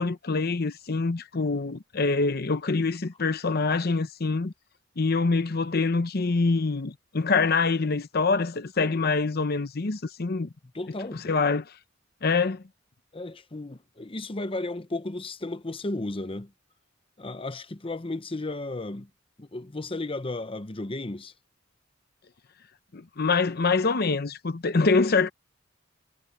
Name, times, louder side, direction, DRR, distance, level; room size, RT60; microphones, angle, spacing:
voice 1, 0.0-4.5 5.0-10.5 11.1-11.7 12.2-12.6 22.9-25.3, left 4 dB, 55° left, 0.8 m, -25 dB
voice 2, 10.7-11.2 13.1-16.5 17.2-19.1 19.4-21.3, left 2 dB, 30° left, 0.9 m, -34 dB
head